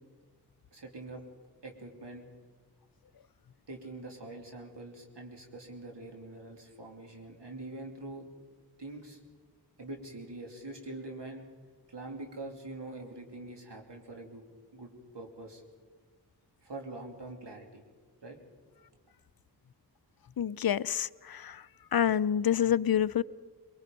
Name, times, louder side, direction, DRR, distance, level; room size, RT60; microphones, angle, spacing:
voice 1, 0.7-1.2 1.6-2.3 3.7-8.3 8.8-9.2 9.8-11.5 11.9-14.4 14.7-15.6 16.6-17.8 18.2-18.4, right 2 dB, 80° right, 2 dB, 3.0 m, -44 dB
voice 2, 20.4-21.6 21.9-23.2, left 9 dB, 60° left, 17 dB, 0.6 m, -27 dB
23.0 x 22.5 x 5.4 m, 1.5 s
wide cardioid pair, 40°, 41 cm